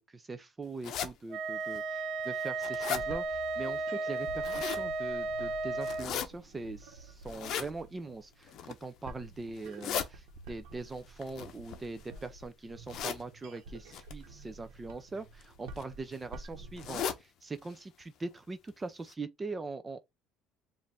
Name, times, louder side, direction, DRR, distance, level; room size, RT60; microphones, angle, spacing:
voice 1, 0.0-20.0, right 3 dB, 20° right, 0.4 m, -42 dB
sound 1, 0.8-1.1 1.7-1.8 2.3-3.0 4.2-4.8 5.8-6.3 7.3-7.7 8.4-8.8 9.6-10.1 11.2-12.2 12.9-13.2 13.9-14.1 15.1-15.4 15.8-15.9 16.1-16.2 16.8-17.2 17.6-17.7 18.0-18.1 18.7-18.8 19.1-19.2, left 8 dB, 55° left, 0.7 m, -36 dB
Wind instrument woodwind instrument, 1.3-6.1, right 3 dB, 60° right, 0.6 m, -34 dB
sound 2, 2.7-17.1, right 3 dB, 85° right, 1.1 m, -50 dB
5.1 x 2.5 x 3.3 m
cardioid pair, 120°, 0 cm